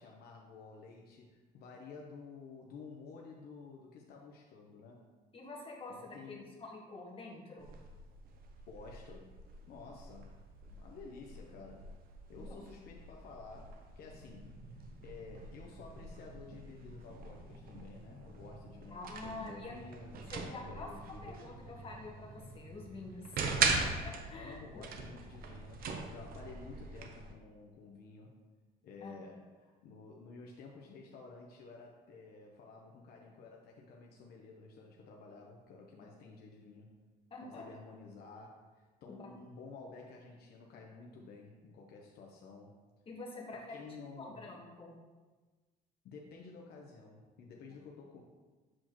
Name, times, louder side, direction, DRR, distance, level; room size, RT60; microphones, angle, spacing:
voice 1, 0.0-5.1 5.9-6.6 8.7-9.4 9.7-10.3 10.7-11.9 12.3-14.6 15.0-19.0 19.3-21.4 23.4-23.9 24.3-28.4 28.8-37.0 37.4-42.8 43.5-44.5 46.0-48.2, left 4 dB, 70° left, 0 dB, 0.8 m, -52 dB
voice 2, 5.3-7.7 9.7-9.9 12.3-12.6 18.9-19.8 20.3-20.9 21.2-23.4 24.3-24.8 29.0-29.1 37.3-37.6 39.1-39.3 43.1-43.8 44.2-45.0, left 2 dB, 35° left, -2 dB, 1.3 m, -47 dB
sound 1, 7.6-27.3, right 4 dB, 60° right, 0.8 m, -41 dB
sound 2, 14.1-25.0, right 1 dB, 85° right, 1.3 m, -56 dB
7.4 x 4.4 x 3.0 m, 1.3 s
cardioid pair, 110°, 17 cm